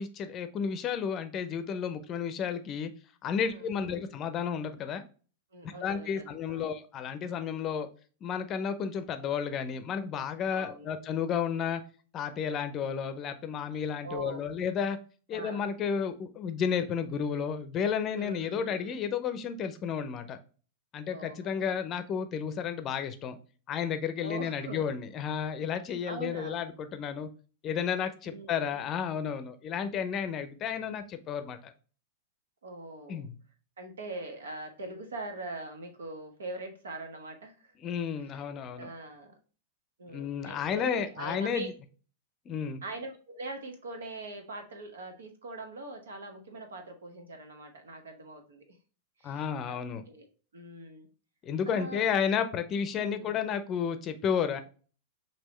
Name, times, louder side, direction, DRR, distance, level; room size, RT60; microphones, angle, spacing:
voice 1, 0.0-2.9 3.2-5.0 5.6-7.9 8.2-11.8 12.1-15.0 15.3-20.4 20.9-23.4 23.7-27.3 27.6-31.7 33.1-33.3 37.8-38.9 40.1-41.7 42.5-42.8 49.2-50.0 51.4-54.6, left 7 dB, 30° left, 0.6 m, -32 dB
voice 2, 3.4-4.0 5.5-6.7 10.5-10.9 14.0-14.4 15.3-15.7 18.2-19.0 21.1-21.8 24.2-24.8 26.0-26.6 28.2-28.8 32.6-33.3 33.8-37.7 38.7-39.3 40.0-41.7 42.8-48.6 49.2-49.7 50.1-50.3 50.5-51.1 51.7-52.0 53.0-53.4, right 2 dB, 70° right, 1.1 m, -42 dB
5.3 x 2.8 x 3.1 m
figure-of-eight pair, 95°, 0 cm